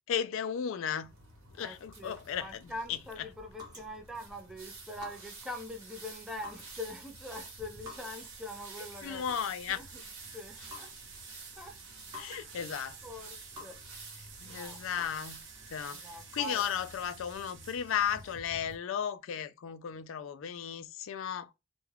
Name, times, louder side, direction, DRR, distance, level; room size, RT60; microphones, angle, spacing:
voice 1, 0.1-1.1 1.6-3.0 9.0-9.8 12.1-13.0 14.4-15.4 15.7-16.0 16.3-21.5, left 8 dB, 70° left, 0.3 m, -35 dB
sound 1, 1.0-18.8, right 3 dB, 70° right, 1.1 m, -50 dB
voice 2, 1.6-9.2 9.7-10.0 10.3-10.9 11.6-11.8 12.1-12.5 13.0-13.8 14.4-15.2 15.9-16.6, left 1 dB, ahead, 0.4 m, -44 dB
sound 2, 2.3-15.9, left 3 dB, 20° right, 0.9 m, -53 dB
sound 3, 7.8-18.3, right 7 dB, 55° right, 0.6 m, -53 dB
2.3 x 2.2 x 3.2 m
head